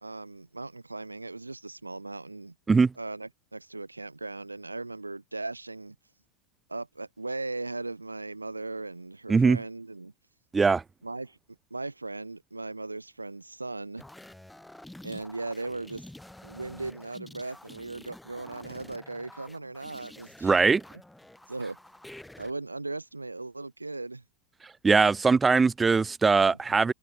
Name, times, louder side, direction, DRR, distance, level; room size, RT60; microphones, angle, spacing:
voice 1, 0.0-2.5 3.0-6.0 6.7-10.1 11.0-11.4 11.7-14.0 15.0-16.0 16.4-20.6 21.5-21.8 22.4-24.2, right 2 dB, 80° right, 1.1 m, -38 dB
sound 1, 14.0-22.5, left 1 dB, 5° left, 4.7 m, -49 dB
voice 2, 20.4-20.8 24.8-26.9, right 4 dB, 15° right, 0.8 m, -21 dB
figure-of-eight pair, 90°, 0 cm